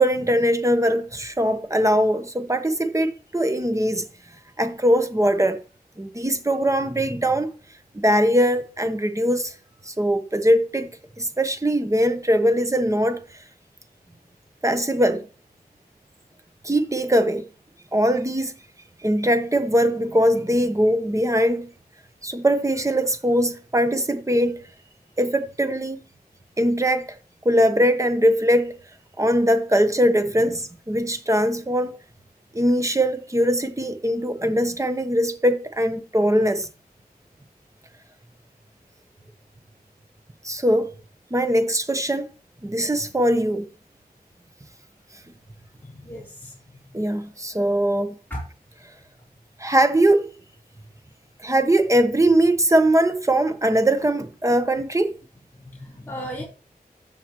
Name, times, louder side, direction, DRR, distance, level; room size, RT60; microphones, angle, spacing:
voice 1, 0.0-4.0 4.6-5.6 6.0-7.5 7.9-9.5 9.8-10.9 11.2-13.2 14.6-15.2 16.6-17.4 17.9-18.5 19.0-21.7 22.2-24.6 25.2-26.0 26.6-27.1 27.4-28.8 29.2-32.0 32.5-36.7 40.4-40.9 41.3-42.3 42.6-43.6 46.9-48.2 49.6-50.3 51.4-55.1, equal, 20° right, 1.0 m, -21 dB
voice 2, 45.8-46.5 48.3-48.4 55.7-56.4, equal, 10° left, 3.7 m, -35 dB
15.0 x 5.7 x 3.1 m
wide cardioid pair, 90°, 16 cm